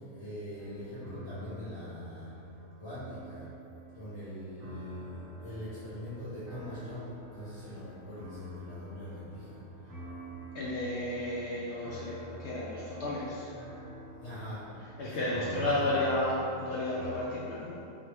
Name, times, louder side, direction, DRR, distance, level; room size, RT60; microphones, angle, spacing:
voice 1, 0.0-2.3 2.8-3.5 3.9-9.6 14.1-16.1, equal, 65° left, -13 dB, 1.7 m, -42 dB
sound 1, 0.6-17.2, equal, 50° right, 0.7 m, -47 dB
voice 2, 10.5-12.1 12.4-13.5 15.0-17.7, left 1 dB, 85° left, -6 dB, 0.6 m, -32 dB
3.8 x 2.8 x 3.2 m, 2.8 s
omnidirectional pair, 1.7 m